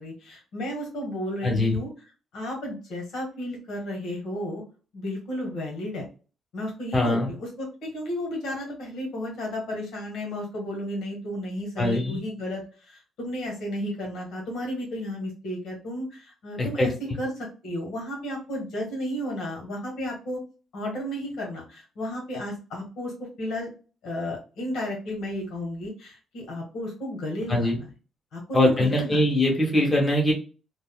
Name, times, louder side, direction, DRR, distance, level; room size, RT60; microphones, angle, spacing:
voice 1, 0.0-1.9 2.3-4.6 4.9-6.0 6.5-16.9 17.2-20.4 20.7-23.1 23.4-23.7 24.0-27.9 28.3-29.3, left 1 dB, 80° left, 0 dB, 1.3 m, -33 dB
voice 2, 1.4-1.8 6.9-7.3 11.8-12.2 16.6-16.9 27.5-27.8 28.5-30.3, left 1 dB, 20° left, -1 dB, 1.2 m, -22 dB
3.5 x 2.1 x 2.2 m, 0.35 s
cardioid pair, 90°, 0 cm